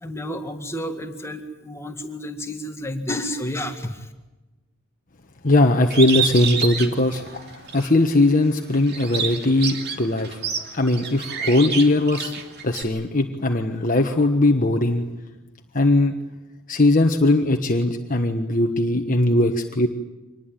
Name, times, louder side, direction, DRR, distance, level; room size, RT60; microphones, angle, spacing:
voice 1, 0.0-4.1, left 1 dB, 10° left, 6 dB, 2.0 m, -31 dB
voice 2, 5.4-10.4 10.7-12.3 12.6-15.0 15.7-16.1 16.7-19.9, left 2 dB, 40° left, 4 dB, 1.4 m, -19 dB
Bird, 5.9-7.9 8.3-12.8, right 6 dB, 50° right, 2.8 m, -28 dB
25.5 x 20.5 x 9.3 m, 1.1 s
head